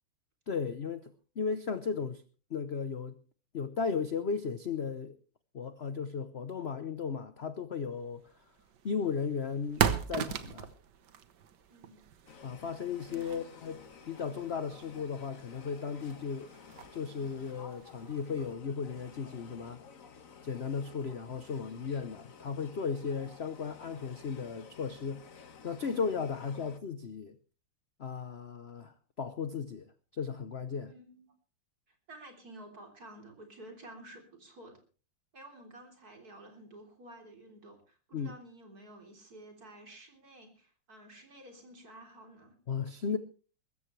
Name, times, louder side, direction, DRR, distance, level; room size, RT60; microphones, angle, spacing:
voice 1, 0.5-2.2 2.5-3.2 3.5-5.2 5.5-8.3 8.8-10.7 12.4-16.5 16.9-19.8 20.4-25.2 25.6-27.4 28.0-29.9 30.1-30.9 38.1-38.3 42.7-43.2, left 6 dB, 65° left, 0.6 m, -35 dB
sound 1, 8.2-18.5, right 8 dB, 60° right, 1.5 m, -39 dB
voice 2, 11.7-12.0 13.1-13.4 30.9-31.3 31.9-34.8 35.3-42.5, right 1 dB, 45° right, 3.9 m, -52 dB
sound 2, 12.3-26.8, left 6 dB, 45° left, 1.4 m, -53 dB
22.5 x 13.5 x 3.2 m
omnidirectional pair, 2.3 m